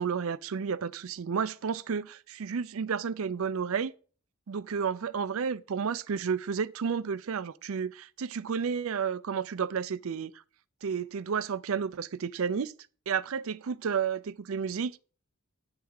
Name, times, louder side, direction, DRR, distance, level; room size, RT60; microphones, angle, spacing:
voice 1, 0.0-3.9 4.5-10.3 10.8-12.7 13.1-15.0, right 6 dB, 70° right, 0.4 m, -31 dB
9.7 x 3.5 x 6.3 m
head